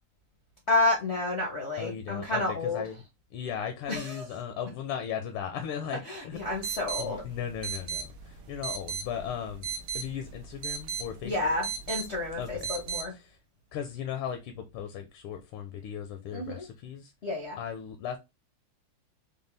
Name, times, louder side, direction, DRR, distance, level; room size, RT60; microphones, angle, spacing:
voice 1, 0.7-2.8 3.9-4.2 6.1-7.2 11.2-13.1 16.3-16.6 17.2-17.6, left 2 dB, 55° left, 0.7 m, -30 dB
voice 2, 1.8-3.0 3.3-6.4 7.0-9.7 9.9-11.5 12.4-12.7 13.1-13.4 13.7-17.1 17.6-18.2, left 8 dB, 80° left, 1.5 m, -37 dB
sound 1, 6.3-13.0, right 6 dB, 75° right, 1.5 m, -38 dB
5.3 x 2.2 x 3.3 m
omnidirectional pair, 2.4 m